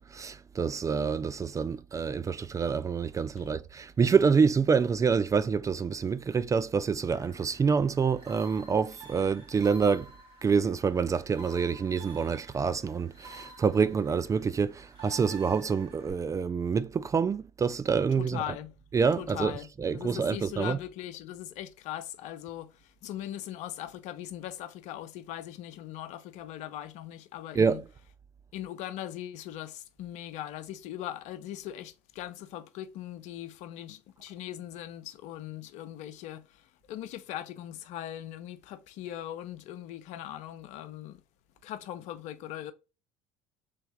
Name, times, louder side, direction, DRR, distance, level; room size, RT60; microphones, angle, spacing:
voice 1, 0.0-10.1 10.4-18.4 18.9-19.5 19.8-20.8 27.6-27.8, right 5 dB, 25° right, 0.3 m, -27 dB
sound 1, 7.1-16.1, right 3 dB, 40° right, 2.5 m, -51 dB
voice 2, 18.1-18.8 19.2-27.8 28.5-41.2 41.6-42.7, left 12 dB, 65° left, 0.6 m, -40 dB
3.5 x 3.3 x 3.2 m
hypercardioid pair, 70°, 13 cm